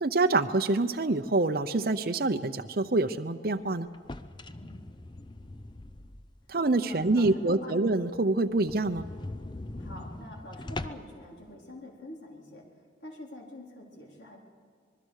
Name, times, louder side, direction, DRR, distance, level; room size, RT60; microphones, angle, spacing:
voice 1, 0.0-3.9 6.5-9.0, right 2 dB, 55° right, 5 dB, 0.7 m, -26 dB
sound 1, 3.9-6.5 6.9-7.0 7.4-7.5 7.8-7.9 8.1-8.2 8.6-11.2, left 2 dB, 25° left, 0.7 m, -41 dB
voice 2, 6.8-7.8 9.8-12.6 13.0-14.4, left 1 dB, 75° left, 0 dB, 3.9 m, -46 dB
26.0 x 20.5 x 6.5 m, 2.1 s
head